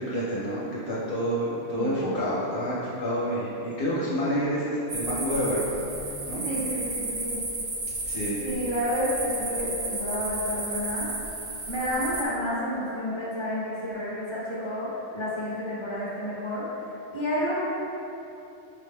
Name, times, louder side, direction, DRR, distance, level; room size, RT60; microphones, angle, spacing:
voice 1, 0.0-5.6 6.3-6.4 8.0-8.4, equal, 60° left, -9 dB, 0.9 m, -28 dB
voice 2, 1.8-2.1 6.4-7.4 8.4-11.1 11.7-16.9 17.1-17.5, equal, 30° left, -8 dB, 0.7 m, -30 dB
sound 1, 4.9-12.2, right 2 dB, 55° right, 0.7 m, -33 dB
5.5 x 2.1 x 3.3 m, 3.0 s
omnidirectional pair, 1.1 m